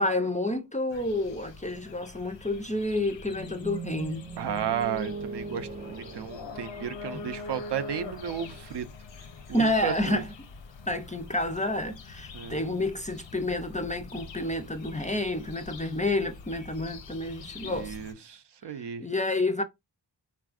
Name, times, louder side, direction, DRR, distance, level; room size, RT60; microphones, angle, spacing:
voice 1, 0.0-4.3 7.1-7.3 9.5-10.3 10.9-18.0 19.0-19.6, left 1 dB, 20° left, 0.3 m, -29 dB
sound 1, 0.9-18.1, left 4 dB, 85° left, 0.6 m, -44 dB
sound 2, 3.3-7.4, right 3 dB, 15° right, 0.7 m, -39 dB
voice 2, 4.4-8.9 9.5-10.2 12.3-12.6 17.6-19.1, right 8 dB, 70° right, 0.5 m, -34 dB
3.5 x 2.4 x 2.4 m
wide cardioid pair, 65°, 43 cm